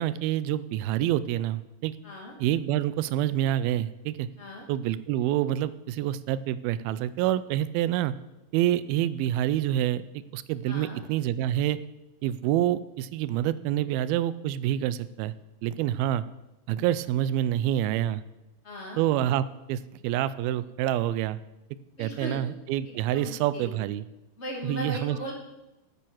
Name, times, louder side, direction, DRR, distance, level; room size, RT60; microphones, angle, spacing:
voice 1, 0.0-2.0 2.4-4.3 4.7-8.1 8.5-10.0 10.3-11.8 12.2-15.3 15.6-16.2 16.7-18.2 19.0-21.4 22.0-24.0 24.6-25.3, right 12 dB, 85° right, 16 dB, 2.4 m, -27 dB
voice 2, 2.0-2.3 4.4-4.7 10.7-11.0 18.6-19.0 22.0-22.4 22.9-23.7 24.4-25.3, equal, 20° left, -1 dB, 2.2 m, -38 dB
8.8 x 8.8 x 6.3 m, 0.94 s
omnidirectional pair, 4.2 m